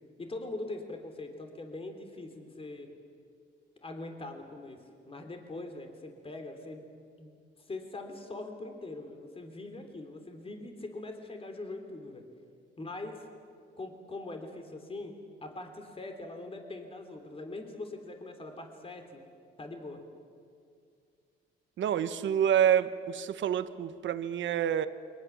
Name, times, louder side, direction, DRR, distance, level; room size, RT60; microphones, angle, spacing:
voice 1, 0.2-2.9 3.8-4.8 5.0-6.8 7.2-7.3 7.7-12.2 12.8-13.1 13.8-15.1 15.4-19.2 19.6-20.0, left 2 dB, 30° left, 5 dB, 3.4 m, -42 dB
voice 2, 21.8-24.9, right 9 dB, 70° right, 11 dB, 1.3 m, -27 dB
28.5 x 23.5 x 7.3 m, 2.3 s
cardioid pair, 90°, 20 cm